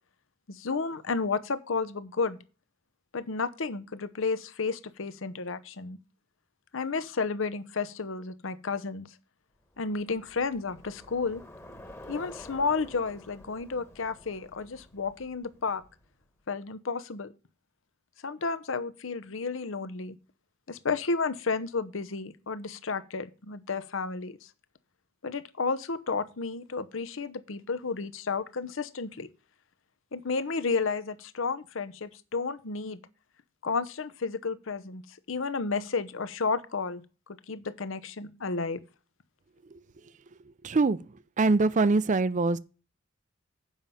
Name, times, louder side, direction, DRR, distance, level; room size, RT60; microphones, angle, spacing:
voice 1, 0.5-2.4 3.1-6.0 6.7-9.1 9.8-11.4 12.1-15.8 16.5-17.3 18.2-20.2 20.7-24.5 25.2-29.3 30.1-33.0 33.6-38.8, left 4 dB, 70° left, 0.8 m, -32 dB
Bicycle, 9.7-16.2, left 1 dB, 15° left, 1.2 m, -50 dB
voice 2, 40.6-41.0 41.4-42.6, right 3 dB, 40° right, 0.5 m, -23 dB
7.3 x 5.6 x 7.4 m
head